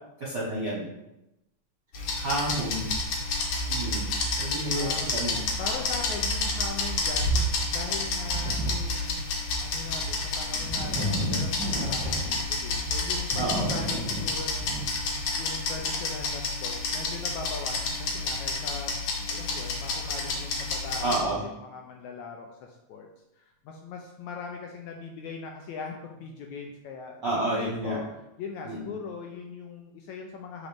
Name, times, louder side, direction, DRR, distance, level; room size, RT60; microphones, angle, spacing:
voice 1, 0.2-0.9 2.1-2.9 3.7-4.1 4.4-5.4 13.4-13.7 21.0-21.4 27.2-28.0 28.6-28.9, right 1 dB, 50° right, -7 dB, 1.4 m, -30 dB
sound 1, 1.9-21.2, left 2 dB, 65° left, 2.0 m, -30 dB
voice 2, 2.5-3.1 4.7-5.3 5.6-19.0 19.3-23.1 23.3-27.2 27.5-28.1 28.4-30.7, left 5 dB, 80° left, 2 dB, 1.7 m, -40 dB
sound 2, 8.3-8.7 9.2-9.4 9.9-14.9, equal, 5° right, 1.3 m, -33 dB
6.8 x 5.1 x 3.5 m, 0.91 s
omnidirectional pair, 3.8 m